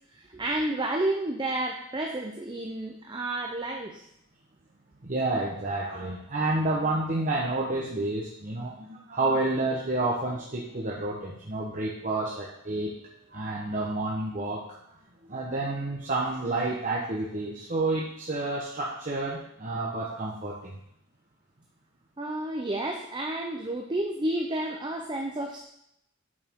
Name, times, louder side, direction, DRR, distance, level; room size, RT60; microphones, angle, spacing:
voice 1, 0.1-4.0 22.2-25.7, right 1 dB, 25° right, 2 dB, 0.6 m, -31 dB
voice 2, 5.0-12.9 13.3-14.6 15.3-20.7, right 2 dB, 40° right, -4 dB, 1.0 m, -29 dB
8.6 x 6.6 x 3.7 m, 0.77 s
head